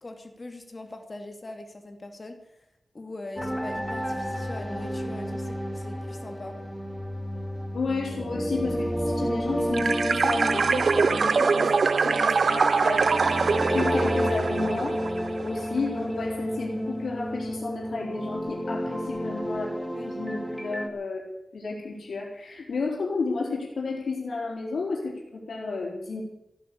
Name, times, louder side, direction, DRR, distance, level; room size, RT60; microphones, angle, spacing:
voice 1, 0.0-2.3 2.9-6.6 20.0-20.1, left 2 dB, 35° left, 5 dB, 2.4 m, -41 dB
sound 1, 3.4-20.9, equal, 5° left, 2.0 m, -31 dB
voice 2, 7.7-11.7 12.0-13.1 13.7-21.2 21.5-26.2, left 3 dB, 90° left, -3 dB, 4.0 m, -32 dB
sound 2, 9.7-15.5, right 5 dB, 70° right, 0.5 m, -24 dB
15.5 x 9.9 x 8.5 m, 0.86 s
wide cardioid pair, 120°, 0 cm